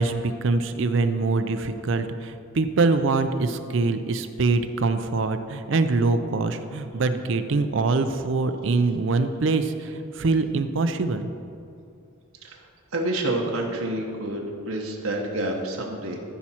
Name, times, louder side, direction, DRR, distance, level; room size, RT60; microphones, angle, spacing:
voice 1, 0.0-11.3, right 3 dB, 65° right, 9 dB, 0.5 m, -24 dB
voice 2, 12.9-16.2, right 1 dB, 85° right, 0 dB, 1.2 m, -28 dB
14.0 x 5.9 x 4.3 m, 2.5 s
head